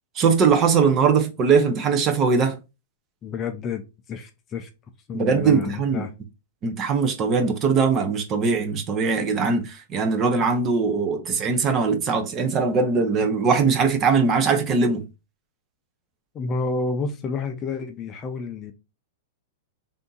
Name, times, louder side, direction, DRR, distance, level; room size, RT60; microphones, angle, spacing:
voice 1, 0.1-2.6 5.1-6.1 6.6-15.1, right 5 dB, 25° right, 0.7 m, -21 dB
voice 2, 3.2-4.7 5.1-6.1 16.3-18.7, left 4 dB, 20° left, 0.5 m, -30 dB
3.5 x 2.7 x 3.8 m
hypercardioid pair, 150°, 0 cm